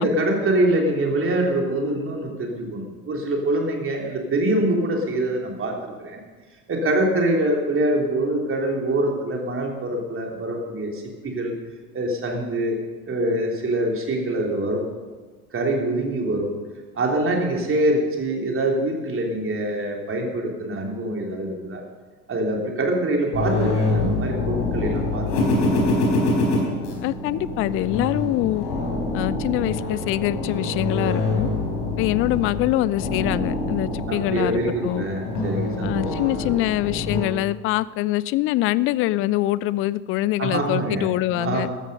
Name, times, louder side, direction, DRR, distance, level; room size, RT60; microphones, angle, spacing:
voice 1, 0.0-6.2 6.7-11.5 11.9-12.8 13.1-14.8 15.5-16.5 16.9-21.8 22.3-25.3 25.5-25.8 34.1-36.1 40.4-41.1 41.3-41.7, right 1 dB, 30° right, 1 dB, 3.4 m, -24 dB
sound 1, 23.3-37.2, left 2 dB, 60° left, 4.2 m, -25 dB
voice 2, 27.0-28.6 29.1-31.5 32.0-35.1 35.8-41.7, left 16 dB, 30° left, 20 dB, 0.4 m, -24 dB
14.5 x 13.5 x 5.5 m, 1.4 s
figure-of-eight pair, 65°, 44 cm